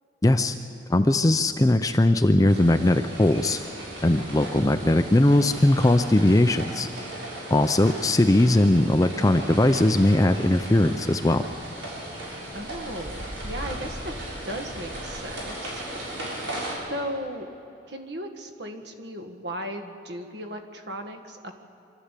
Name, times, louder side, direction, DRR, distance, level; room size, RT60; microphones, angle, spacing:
voice 1, 0.2-0.6 0.9-3.6 4.0-6.9 7.5-11.5, left 1 dB, 20° left, 8 dB, 0.5 m, -20 dB
sound 1, 2.5-16.7, right 1 dB, 90° right, 7.0 m, -37 dB
voice 2, 12.5-14.1 14.4-15.8 16.5-17.5 17.9-21.5, equal, 60° right, 6 dB, 1.7 m, -36 dB
25.5 x 13.0 x 8.3 m, 2.8 s
head